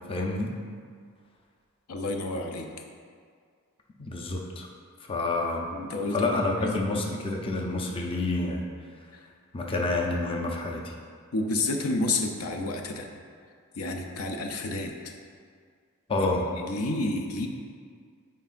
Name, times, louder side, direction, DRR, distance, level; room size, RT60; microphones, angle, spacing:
voice 1, 0.1-0.5 4.0-4.7 5.1-5.7 6.1-8.7 9.5-10.9 16.1-16.4, left 2 dB, 25° left, 0 dB, 0.5 m, -28 dB
voice 2, 1.9-2.7 5.7-7.0 9.1-9.2 11.3-13.1 13.7-15.1 16.3-17.5, left 2 dB, 85° left, 3 dB, 0.6 m, -30 dB
9.1 x 4.7 x 2.5 m, 2.1 s
head